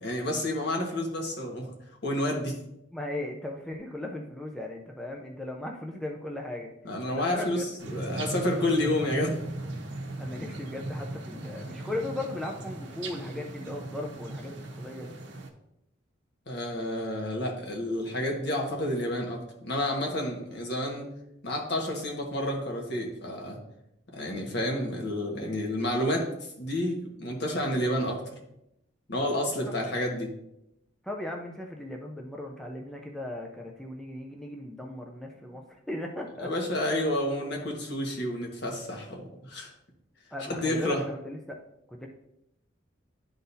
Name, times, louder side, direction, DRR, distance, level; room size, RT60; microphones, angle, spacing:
voice 1, 0.0-1.7 2.0-2.5 6.8-9.4 16.5-21.1 21.4-23.6 24.1-26.3 26.6-28.2 29.1-30.3 36.4-39.7 40.5-41.0, left 1 dB, 60° left, 0 dB, 1.4 m, -30 dB
voice 2, 2.9-6.7 7.1-7.7 10.2-15.1 31.0-35.6 35.9-36.5 40.3-41.6 41.9-42.1, left 1 dB, ahead, 0 dB, 0.5 m, -37 dB
sound 1, 7.8-15.5, right 2 dB, 65° right, 0.9 m, -38 dB
11.5 x 3.9 x 2.7 m, 0.82 s
head